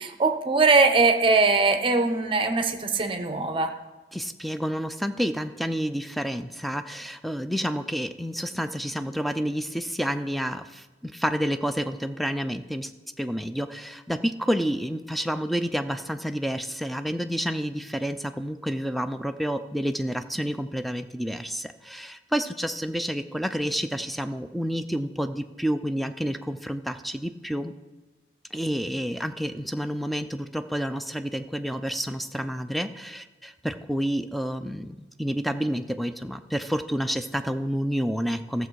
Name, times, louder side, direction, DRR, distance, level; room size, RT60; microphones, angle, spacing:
voice 1, 0.0-3.7, right 3 dB, 30° right, 7 dB, 0.7 m, -21 dB
voice 2, 4.1-12.9 13.2-27.7 28.5-38.7, equal, ahead, 9 dB, 0.4 m, -29 dB
14.5 x 6.9 x 4.7 m, 1.2 s
head